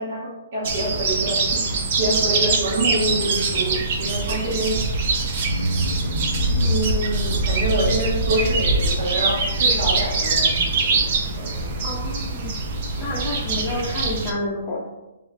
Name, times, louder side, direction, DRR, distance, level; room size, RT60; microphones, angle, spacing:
voice 1, 0.0-4.8 6.6-11.8, right 1 dB, 55° right, -5 dB, 1.2 m, -26 dB
sound 1, 0.6-14.3, right 3 dB, 35° right, 0.5 m, -23 dB
sound 2, 3.4-5.0 5.4-10.7, left 1 dB, 85° left, 0.5 m, -30 dB
voice 2, 11.8-12.5 13.0-14.9, left 2 dB, 15° left, -4 dB, 0.7 m, -29 dB
3.2 x 3.1 x 3.2 m, 1.0 s
hypercardioid pair, 170°, 0 cm